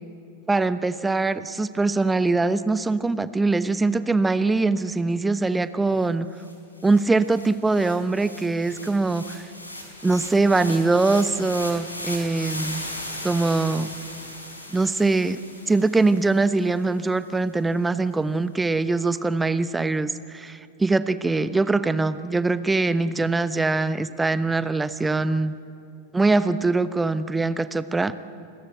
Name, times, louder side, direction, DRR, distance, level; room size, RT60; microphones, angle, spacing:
voice 1, 0.5-6.3 6.8-9.4 10.0-12.8 13.2-13.9 14.7-15.4 15.7-25.5 26.1-28.1, right 3 dB, 10° right, 14 dB, 0.9 m, -22 dB
sound 1, 6.0-6.1 6.4-16.7, left 1 dB, 80° left, 4.7 m, -38 dB
29.0 x 21.0 x 8.2 m, 2.5 s
figure-of-eight pair, 90°, 0 cm